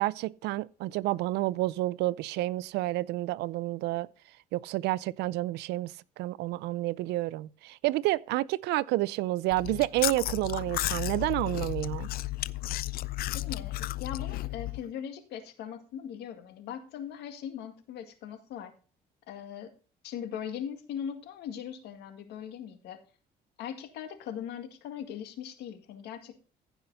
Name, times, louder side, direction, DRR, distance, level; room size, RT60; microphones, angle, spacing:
voice 1, 0.0-4.1 4.5-12.1, right 17 dB, 85° right, 0.5 m, -30 dB
Chewing mastication, 9.5-14.8, left 17 dB, 60° left, 0.4 m, -33 dB
voice 2, 13.3-18.7 19.3-19.7 20.0-23.0 23.6-26.3, left 9 dB, 80° left, 2.0 m, -40 dB
15.0 x 5.7 x 4.1 m
cardioid pair, 110°, 17 cm